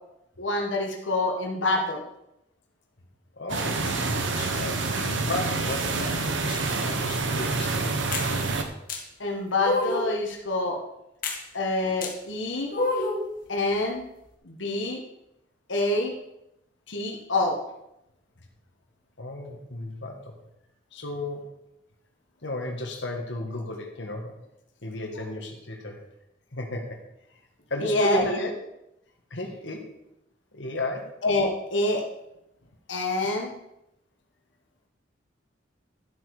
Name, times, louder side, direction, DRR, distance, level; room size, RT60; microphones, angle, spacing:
voice 1, 0.4-2.0 9.2-10.8 11.5-12.7 13.5-14.0 14.4-15.0 15.7-16.1 16.9-17.6 27.8-28.4 31.2-32.0 32.9-33.5, left 2 dB, 85° left, 1 dB, 1.7 m, -26 dB
voice 2, 3.4-3.9 4.3-8.1 19.2-20.4 20.9-21.6 22.4-24.4 24.8-26.0 26.5-27.0 27.7-28.5 29.3-29.9 30.5-31.2, left 1 dB, 70° left, 1 dB, 1.7 m, -34 dB
sound 1, 3.5-8.6, right 3 dB, 85° right, 1.4 m, -27 dB
sound 2, 8.1-8.3 8.9-9.0 9.6-10.2 11.2-11.4 12.0-12.1 12.7-13.3, left 2 dB, 50° left, 1.8 m, -27 dB
12.0 x 8.0 x 5.0 m, 0.84 s
head